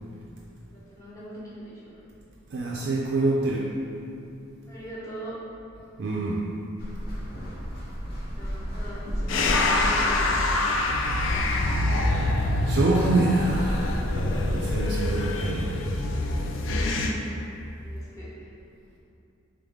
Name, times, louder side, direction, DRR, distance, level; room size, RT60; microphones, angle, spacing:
voice 1, 0.7-2.0 4.7-5.3 8.3-10.7 17.8-18.3, equal, 15° left, -9 dB, 0.9 m, -40 dB
voice 2, 2.5-3.7 6.0-6.4 12.6-13.9 14.5-15.7, right 2 dB, 55° right, -4 dB, 0.3 m, -25 dB
sound 1, 6.8-14.8, equal, 45° left, 0.8 m, -33 dB
sound 2, 9.3-17.1, left 2 dB, 65° left, 0.3 m, -25 dB
3.5 x 3.3 x 3.5 m, 2.6 s
head